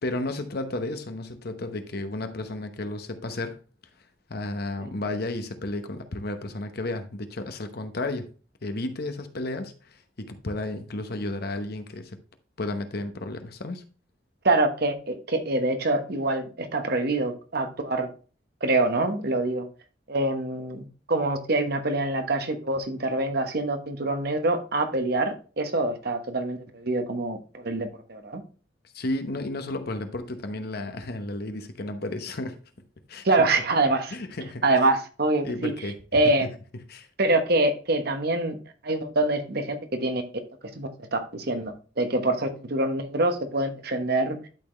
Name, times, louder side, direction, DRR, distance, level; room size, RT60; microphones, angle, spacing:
voice 1, 0.0-3.6 4.3-8.3 8.6-12.2 12.6-13.8 28.9-32.6 33.1-33.3 33.9-34.7 35.4-37.1, left 2 dB, 55° left, 1.0 m, -33 dB
voice 2, 14.4-18.1 18.6-19.7 20.1-28.4 33.2-34.1 34.6-35.7 36.1-36.5 37.2-38.6 38.8-40.2 40.7-44.5, right 2 dB, 55° right, 1.1 m, -25 dB
11.5 x 4.2 x 3.2 m
head